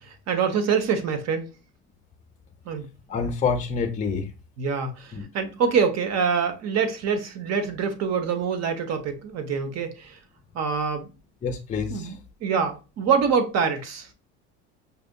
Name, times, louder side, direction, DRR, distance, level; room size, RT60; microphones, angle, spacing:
voice 1, 0.0-1.5 2.7-2.9 4.6-10.2 10.5-11.1 11.9-14.1, right 6 dB, 50° right, 0.9 m, -25 dB
voice 2, 3.1-4.3 5.1-5.2 11.4-12.1, left 5 dB, 20° left, 0.6 m, -27 dB
5.5 x 2.5 x 2.2 m
supercardioid pair, 105°, 33 cm